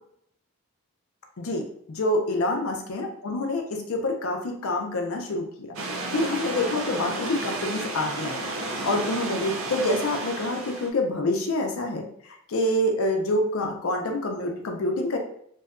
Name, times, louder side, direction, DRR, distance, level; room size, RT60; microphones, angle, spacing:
voice 1, 1.4-15.2, left 1 dB, 70° left, 3 dB, 0.5 m, -27 dB
sound 1, 5.7-10.9, right 2 dB, 65° right, 0.4 m, -32 dB
2.7 x 2.2 x 2.4 m, 0.68 s
head